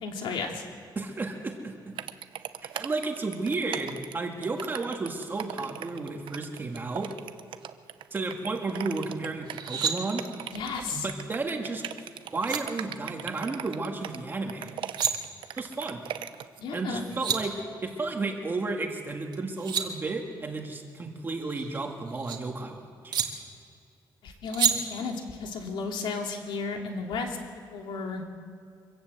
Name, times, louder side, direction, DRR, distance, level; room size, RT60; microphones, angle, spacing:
voice 1, 0.0-0.6 10.5-11.1 16.6-17.0 24.2-27.4 27.7-28.2, left 4 dB, 80° left, 2 dB, 3.0 m, -33 dB
voice 2, 1.0-1.9 2.6-7.1 8.1-10.2 10.9-14.8 15.6-16.0 16.7-17.6 17.8-23.2, right 3 dB, 25° right, 2 dB, 2.0 m, -33 dB
sound 1, 2.0-16.6, right 10 dB, 80° right, 0.8 m, -39 dB
sound 2, 9.5-9.9 12.0-12.1 12.4-12.6 14.7-15.1 16.8-16.9 17.0-17.4 19.3-19.9 21.3-22.4 23.1-23.3 24.5-24.7, right 8 dB, 65° right, 2.1 m, -28 dB
24.5 x 17.0 x 7.9 m, 2.3 s
wide cardioid pair, 170°, 8 cm